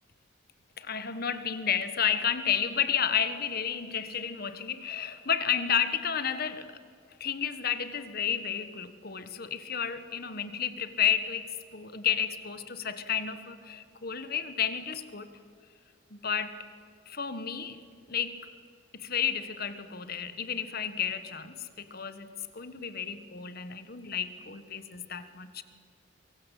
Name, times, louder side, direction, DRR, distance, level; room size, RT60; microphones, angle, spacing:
voice 1, 0.8-6.8 7.2-15.3 16.1-16.6 17.1-17.8 18.1-18.4 18.9-25.6, left 8 dB, 45° left, 11 dB, 1.4 m, -31 dB
23.5 x 23.0 x 8.4 m, 2.3 s
head